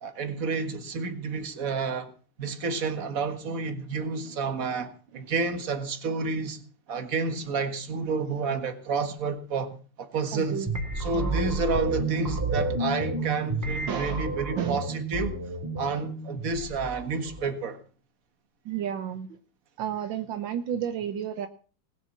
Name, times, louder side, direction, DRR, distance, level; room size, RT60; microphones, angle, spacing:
voice 1, 0.0-2.1 2.4-6.6 6.9-10.7 11.0-15.4 15.8-17.8, right 4 dB, 45° right, 2.0 m, -30 dB
voice 2, 10.3-10.7 11.1-11.5 13.9-14.8 18.6-19.3 19.8-21.5, right 9 dB, 75° right, 1.6 m, -32 dB
sound 1, 10.7-17.5, right 2 dB, 10° right, 3.1 m, -31 dB
20.0 x 8.3 x 7.2 m
omnidirectional pair, 2.1 m